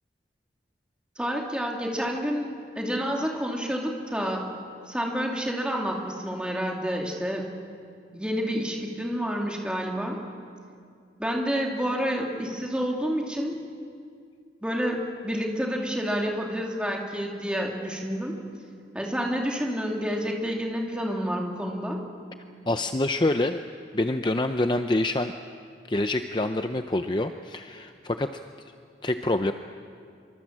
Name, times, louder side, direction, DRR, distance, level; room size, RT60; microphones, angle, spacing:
voice 1, 1.2-2.5 2.7-4.5 4.9-7.5 8.1-10.2 11.2-13.6 14.6-18.4 18.9-22.0, equal, 5° right, -1 dB, 2.7 m, -29 dB
voice 2, 22.7-23.6 23.9-25.3 25.9-28.3 29.0-29.5, left 2 dB, 25° left, 7 dB, 0.6 m, -26 dB
25.0 x 24.5 x 7.4 m, 2.3 s
head